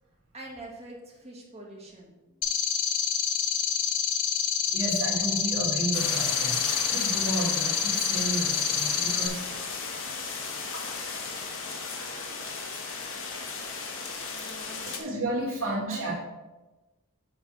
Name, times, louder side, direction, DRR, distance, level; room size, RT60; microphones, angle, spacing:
voice 1, 0.3-2.5 14.2-15.0 15.9-16.1, right 1 dB, 30° right, -2 dB, 1.7 m, -45 dB
sound 1, 2.4-9.3, left 8 dB, 80° left, 0.7 m, -27 dB
voice 2, 4.7-6.6 6.9-9.4 14.9-16.1, right 2 dB, 65° right, -4 dB, 2.7 m, -32 dB
sound 2, 5.9-15.0, left 4 dB, 65° left, 1.3 m, -35 dB
7.8 x 3.5 x 6.4 m, 1.1 s
head